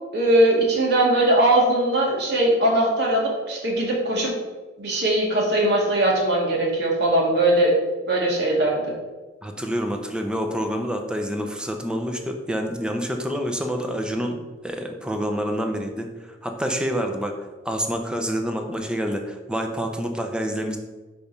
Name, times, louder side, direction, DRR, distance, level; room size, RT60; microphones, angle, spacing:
voice 1, 0.1-4.3 4.8-7.7 8.1-8.9, right 1 dB, 65° right, -3 dB, 2.1 m, -20 dB
voice 2, 9.4-17.4 17.6-20.8, equal, 5° right, 4 dB, 0.7 m, -27 dB
5.4 x 5.1 x 5.2 m, 1.2 s
head